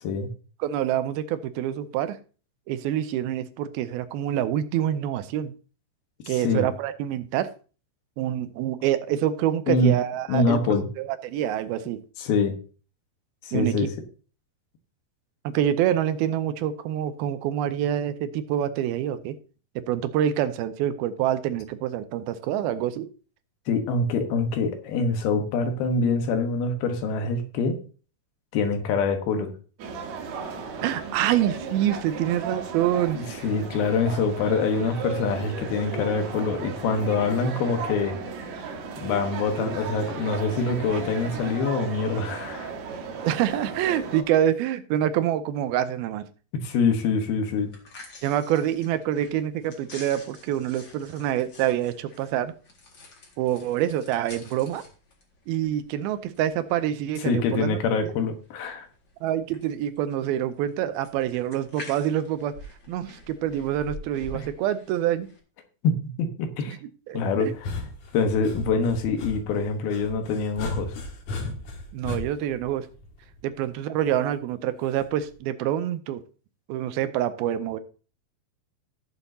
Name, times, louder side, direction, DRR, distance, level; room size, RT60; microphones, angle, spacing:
voice 1, 0.6-2.2 2.7-5.5 6.3-7.5 8.2-12.0 13.5-13.9 15.4-19.4 19.8-23.1 30.8-33.2 43.2-46.3 48.2-52.5 53.4-54.8 55.5-57.8 58.0-58.1 59.2-62.5 62.9-65.3 66.7-66.8 67.1-67.5 71.9-72.9 73.4-76.2 76.7-77.8, right 11 dB, 85° right, 12 dB, 2.5 m, -26 dB
voice 2, 6.2-6.7 9.7-10.0 10.3-10.9 12.2-12.6 13.4-13.9 23.7-27.8 28.5-29.5 33.2-38.2 39.0-42.7 46.6-47.7 57.2-58.9 64.3-64.5 65.8-66.8 67.1-67.7 68.1-70.9, left 4 dB, 80° left, 6 dB, 3.2 m, -25 dB
sound 1, 29.8-44.2, right 5 dB, 60° right, 2.2 m, -35 dB
sound 2, 47.6-65.4, left 1 dB, 40° left, 2.1 m, -47 dB
sound 3, 67.5-73.6 74.9-75.3, left 2 dB, 55° left, 2.5 m, -36 dB
16.5 x 7.2 x 2.8 m, 0.37 s
omnidirectional pair, 4.3 m